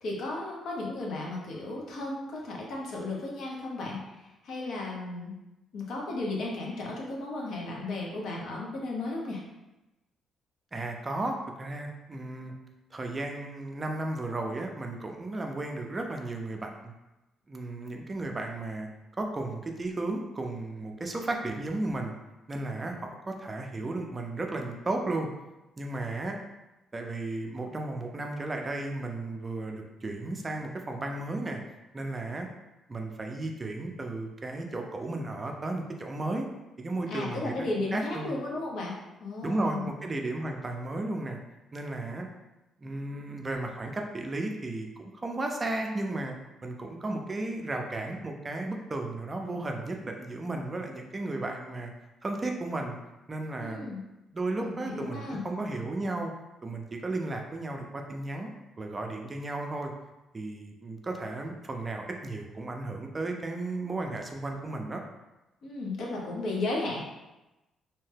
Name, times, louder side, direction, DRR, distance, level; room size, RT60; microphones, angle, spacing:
voice 1, 0.0-5.4 5.7-9.4 37.1-39.9 53.5-54.0 54.6-55.4 65.6-67.0, left 2 dB, 70° left, -2 dB, 0.7 m, -34 dB
voice 2, 10.7-12.5 12.9-16.9 17.5-18.9 19.2-22.1 22.5-25.3 25.8-26.4 26.9-31.6 31.9-32.5 32.9-36.5 36.8-37.7 37.9-38.3 39.4-41.4 41.7-42.3 42.8-46.3 46.6-51.9 52.2-53.0 53.3-53.9 54.3-56.3 56.6-58.5 58.8-59.9 60.3-65.0, right 2 dB, 25° right, 2 dB, 0.4 m, -34 dB
2.7 x 2.2 x 3.2 m, 1.0 s
cardioid pair, 90°, 0 cm